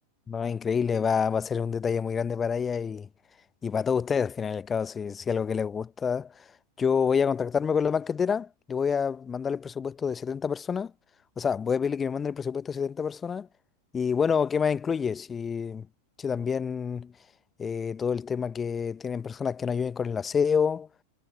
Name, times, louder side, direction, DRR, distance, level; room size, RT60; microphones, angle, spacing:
voice 1, 0.3-3.1 3.6-6.4 6.8-10.9 11.4-13.5 13.9-15.9 16.2-17.1 17.6-20.9, left 6 dB, 20° left, 0.9 m, -28 dB
figure-of-eight pair, 90°, 0 cm